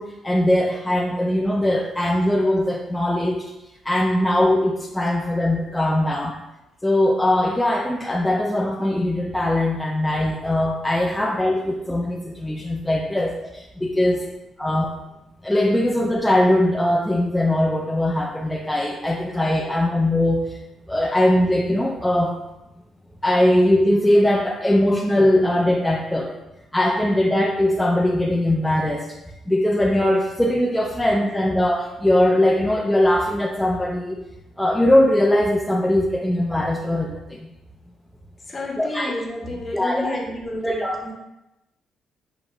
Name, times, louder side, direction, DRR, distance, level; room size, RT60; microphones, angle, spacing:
voice 1, 0.0-3.4 3.9-6.3 6.8-14.2 14.6-14.9 15.4-20.6 20.9-22.4 23.2-26.3 26.7-29.1 29.5-34.2 34.6-37.5 38.8-39.1 39.7-40.2 40.6-41.1, left 1 dB, 5° left, -1 dB, 0.4 m, -20 dB
voice 2, 38.5-41.1, left 1 dB, 35° left, 0 dB, 1.0 m, -31 dB
7.1 x 3.0 x 2.4 m, 0.93 s
cardioid pair, 90°, 0 cm